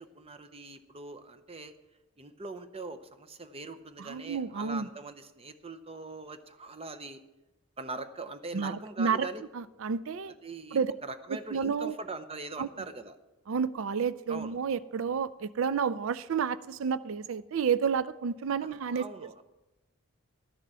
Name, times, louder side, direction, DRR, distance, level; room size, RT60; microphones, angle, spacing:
voice 1, 0.0-1.7 2.2-7.2 7.8-9.4 10.3-13.2 14.3-14.6 18.6-19.4, right 3 dB, 25° right, 10 dB, 0.7 m, -42 dB
voice 2, 4.0-4.9 8.5-9.3 9.5-10.3 10.7-10.9 11.3-12.0 12.6-12.7 13.5-19.0, right 6 dB, 60° right, 16 dB, 0.4 m, -30 dB
12.5 x 6.7 x 7.5 m, 1.0 s
head